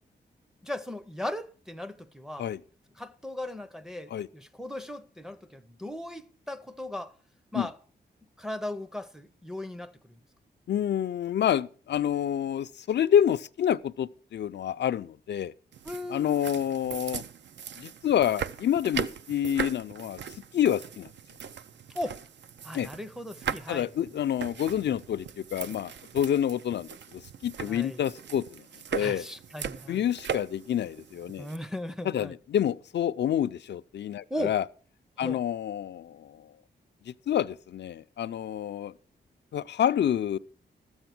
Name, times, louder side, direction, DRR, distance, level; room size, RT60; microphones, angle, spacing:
voice 1, 0.6-2.5 3.0-7.2 7.5-7.8 8.4-10.2 15.8-16.4 21.9-22.2 22.6-23.9 27.7-28.0 28.9-30.1 31.4-32.3 34.3-34.6 35.2-35.4, left 1 dB, 5° right, 0.5 m, -37 dB
voice 2, 10.7-15.5 16.1-17.2 17.8-20.2 20.5-21.1 22.7-22.9 23.7-28.6 28.9-29.3 29.9-31.5 32.0-34.6 35.2-36.5 37.1-38.9 39.5-40.4, left 10 dB, 75° left, 0.4 m, -28 dB
sound 1, 15.7-31.6, right 8 dB, 75° right, 0.6 m, -39 dB
13.0 x 8.0 x 6.0 m
wide cardioid pair, 175°, 18 cm